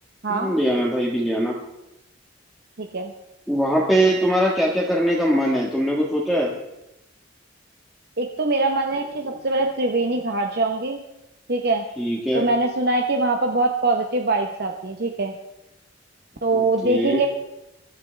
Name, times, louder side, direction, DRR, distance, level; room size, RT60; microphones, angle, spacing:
voice 1, 0.3-1.5 3.5-6.5 12.0-12.5 16.5-17.2, equal, ahead, -4 dB, 1.6 m, -21 dB
voice 2, 2.8-3.1 8.2-11.0 11.5-11.8 12.3-15.4 16.4-17.3, right 2 dB, 55° right, 3 dB, 1.0 m, -23 dB
22.5 x 12.5 x 3.4 m, 0.91 s
head